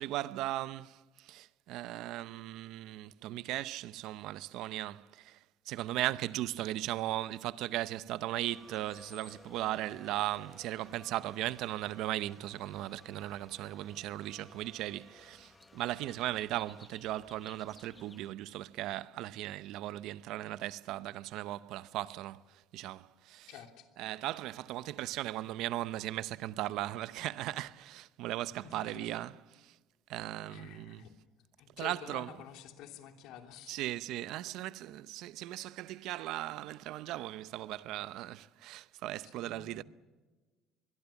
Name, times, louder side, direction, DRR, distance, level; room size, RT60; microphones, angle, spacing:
voice 1, 0.0-23.5 24.0-29.8 30.1-31.0 31.8-32.3 33.7-39.8, right 14 dB, 60° right, 0.7 m, -37 dB
sound 1, 8.5-18.3, left 2 dB, 10° left, 1.0 m, -57 dB
voice 2, 23.5-23.9 28.6-29.1 30.5-31.1 31.6-33.9 39.2-39.3 39.7-39.8, left 9 dB, 65° left, 3.1 m, -49 dB
24.0 x 22.0 x 7.2 m
cardioid pair, 165°, 0 cm